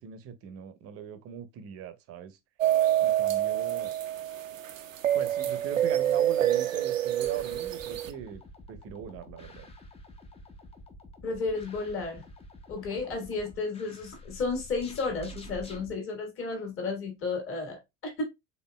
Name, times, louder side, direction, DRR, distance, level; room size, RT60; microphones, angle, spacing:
voice 1, 0.0-2.4 3.0-3.9 5.1-8.4 8.7-9.7, right 9 dB, 35° right, 0.7 m, -39 dB
sound 1, 2.6-8.1, right 12 dB, 85° right, 0.6 m, -27 dB
sound 2, 7.2-15.9, left 1 dB, 15° left, 0.6 m, -48 dB
voice 2, 11.2-12.2 12.7-18.2, left 3 dB, 35° left, 1.6 m, -33 dB
4.2 x 3.2 x 2.2 m
figure-of-eight pair, 70°, 38 cm